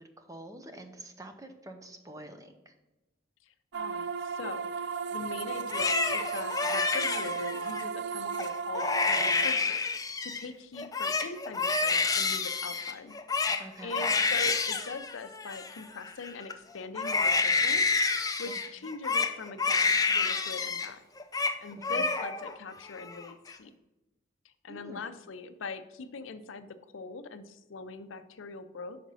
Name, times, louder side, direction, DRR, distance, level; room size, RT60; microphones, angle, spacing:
voice 1, 0.2-2.7 13.6-14.0 18.5-18.6 21.8-22.1 24.7-25.0, right 1 dB, 15° right, 6 dB, 0.7 m, -47 dB
voice 2, 3.4-9.8 10.2-13.1 13.8-17.9 18.1-21.0 21.6-23.7 24.4-29.0, left 4 dB, 85° left, 11 dB, 0.6 m, -42 dB
sound 1, 3.7-9.6, right 6 dB, 60° right, 0.4 m, -35 dB
Crying sobbing, 5.6-7.8 8.3-8.5 8.7-10.5 10.8-16.5 16.9-20.9 21.2-21.6 21.8-22.5 22.9-23.5, left 4 dB, 20° left, 0.5 m, -29 dB
6.1 x 5.0 x 5.4 m, 1.0 s
head